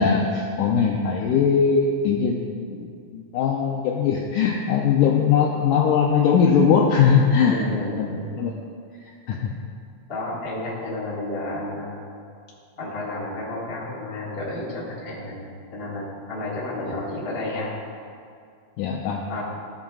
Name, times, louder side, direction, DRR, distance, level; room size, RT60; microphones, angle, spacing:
voice 1, 0.0-8.6 9.3-9.6 18.8-19.2, left 6 dB, 85° left, 0 dB, 1.8 m, -21 dB
voice 2, 7.4-8.3 10.1-12.0 12.8-17.7 19.3-19.4, left 2 dB, 40° left, -6 dB, 0.8 m, -31 dB
14.0 x 7.1 x 2.4 m, 2.3 s
omnidirectional pair, 4.1 m